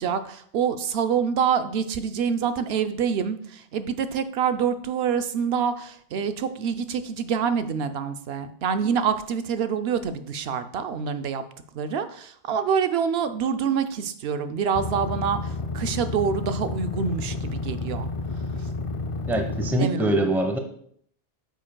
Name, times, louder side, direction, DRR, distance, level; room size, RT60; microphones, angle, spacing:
voice 1, 0.0-11.4 11.7-18.1 19.8-20.2, right 7 dB, 75° right, 10 dB, 0.8 m, -26 dB
sound 1, 14.7-19.7, left 3 dB, 50° left, 0.4 m, -31 dB
voice 2, 19.3-20.6, right 1 dB, ahead, 4 dB, 0.7 m, -23 dB
9.0 x 7.5 x 2.2 m, 0.63 s
omnidirectional pair, 1.1 m